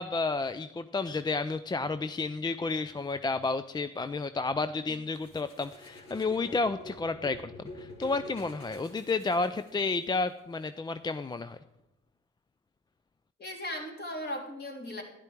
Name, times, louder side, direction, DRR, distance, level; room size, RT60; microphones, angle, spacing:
voice 1, 0.0-11.6, left 3 dB, 15° left, 12 dB, 0.3 m, -31 dB
sound 1, 5.1-10.0, left 2 dB, 55° left, 2.6 m, -47 dB
voice 2, 13.4-15.0, left 1 dB, 35° left, 0 dB, 2.9 m, -37 dB
12.0 x 10.5 x 4.5 m, 0.92 s
cardioid pair, 90°, 30 cm